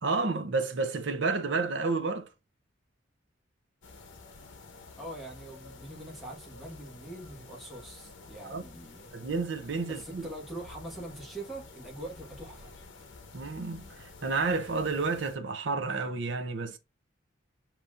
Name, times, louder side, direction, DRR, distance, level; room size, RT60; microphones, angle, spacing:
voice 1, 0.0-2.3 8.5-8.6 9.1-10.3 13.3-16.8, right 4 dB, 65° right, 0.7 m, -30 dB
sound 1, 3.8-15.4, left 3 dB, 70° left, 0.9 m, -50 dB
voice 2, 5.0-9.1 9.9-12.9, right 1 dB, ahead, 1.4 m, -43 dB
6.8 x 3.0 x 2.4 m
head